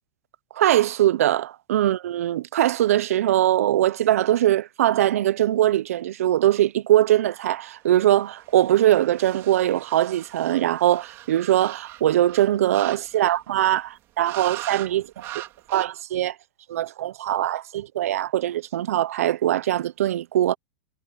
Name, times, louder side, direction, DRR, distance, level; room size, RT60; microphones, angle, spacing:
voice 1, 0.6-15.4 15.7-16.3 16.7-20.5, right 13 dB, 85° right, 0.7 m, -21 dB
sound 1, 7.9-13.6 14.2-14.9 15.2-15.9, right 15 dB, 35° right, 3.3 m, -40 dB
supercardioid pair, 160°, 8 cm